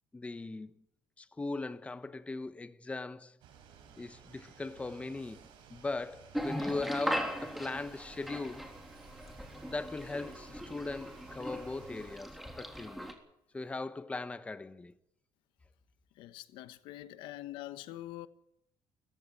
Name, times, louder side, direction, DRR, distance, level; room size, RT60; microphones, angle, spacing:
voice 1, 0.1-0.7 1.2-3.4 4.0-8.6 9.6-13.1 13.5-14.9, left 3 dB, 15° left, 1.1 m, -39 dB
sound 1, 3.4-12.2, right 7 dB, 80° right, 6.0 m, -57 dB
sound 2, 6.3-13.1, equal, ahead, 3.6 m, -39 dB
voice 2, 16.2-18.3, left 15 dB, 90° left, 1.2 m, -44 dB
18.0 x 15.5 x 9.9 m
cardioid pair, 120°, 8 cm